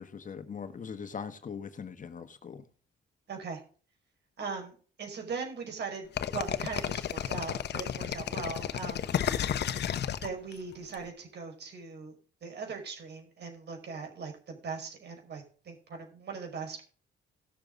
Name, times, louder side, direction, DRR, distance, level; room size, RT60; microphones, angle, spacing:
voice 1, 0.0-2.6, left 6 dB, 40° left, 10 dB, 1.3 m, -41 dB
voice 2, 3.3-3.6 4.4-6.1 6.3-9.1 10.2-12.1 12.4-16.8, right 5 dB, 60° right, 3 dB, 5.3 m, -40 dB
sound 1, 6.2-10.9, left 9 dB, 60° left, 1.0 m, -32 dB
17.5 x 7.0 x 3.8 m, 0.40 s
cardioid pair, 90°, 20 cm